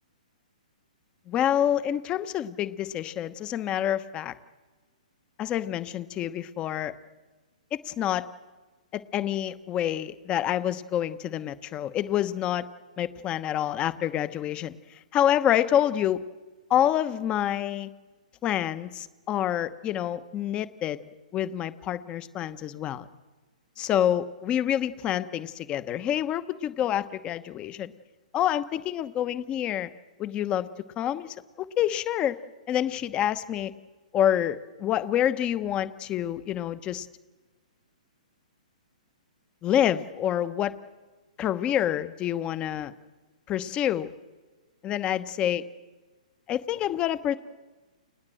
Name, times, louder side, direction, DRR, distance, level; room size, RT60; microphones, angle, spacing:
voice 1, 1.3-4.3 5.4-6.9 7.7-8.3 8.9-12.7 13.0-16.2 16.7-17.9 18.4-21.0 21.3-23.0 23.8-27.9 28.3-29.9 30.2-30.7 31.0-32.4 32.7-33.7 34.1-37.1 39.6-40.7 41.4-42.9 43.5-44.1 44.8-45.6 46.5-47.4, left 11 dB, 25° left, 14 dB, 1.0 m, -27 dB
29.0 x 20.0 x 7.7 m, 1.3 s
hypercardioid pair, 140°, 4 cm